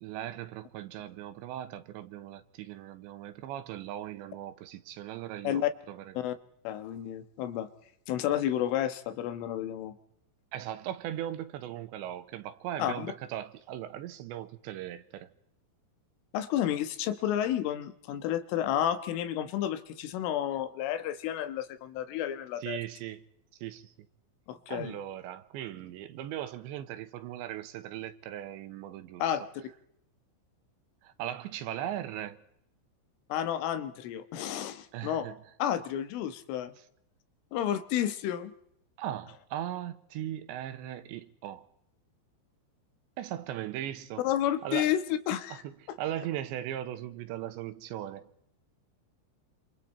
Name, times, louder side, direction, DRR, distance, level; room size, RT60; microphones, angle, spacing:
voice 1, 0.0-6.1 10.5-15.3 22.6-23.2 23.6-23.9 24.7-29.4 31.0-32.4 34.9-35.4 39.0-41.7 43.2-44.3 44.6-44.9 45.5-48.3, right 12 dB, 75° right, 3.1 m, -38 dB
voice 2, 6.7-7.7 8.1-10.0 12.8-13.1 16.3-22.8 24.5-25.0 29.2-29.5 33.3-35.3 35.6-36.7 37.5-38.5 44.2-45.0 45.3-45.6, left 11 dB, 85° left, 3.9 m, -31 dB
28.0 x 26.5 x 4.3 m
omnidirectional pair, 5.6 m